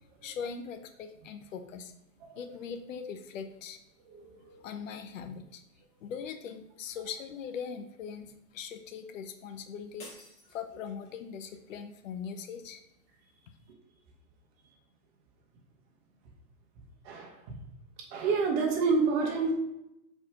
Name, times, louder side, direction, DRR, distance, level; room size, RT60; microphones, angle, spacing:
voice 1, 0.2-1.9 2.3-3.8 4.6-5.6 6.0-10.1 10.5-12.8, left 6 dB, 55° left, 9 dB, 0.8 m, -40 dB
voice 2, 4.1-4.7 17.0-17.6 18.0-19.5, right 4 dB, 40° right, 1 dB, 1.7 m, -29 dB
sound 1, 10.0-11.2, left 2 dB, 20° left, 2.0 m, -51 dB
5.7 x 4.9 x 3.7 m, 0.85 s
hypercardioid pair, 130°, 46 cm